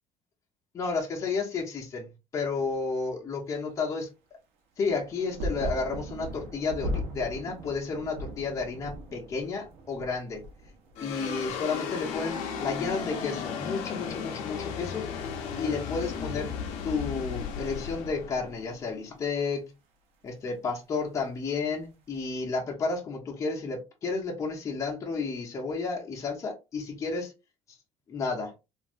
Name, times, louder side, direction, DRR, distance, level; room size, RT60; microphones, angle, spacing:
voice 1, 0.7-4.1 4.8-10.4 11.0-15.0 15.6-16.5 16.8-19.7 20.2-27.3 27.7-27.8 28.1-28.5, left 4 dB, 30° left, 0.9 m, -32 dB
sound 1, 4.8-13.9 14.1-15.0 16.0-16.1, equal, 70° right, 0.9 m, -39 dB
sound 2, 11.0-19.5, left 6 dB, 85° left, 0.6 m, -35 dB
3.2 x 2.6 x 2.4 m
cardioid pair, 140°, 11 cm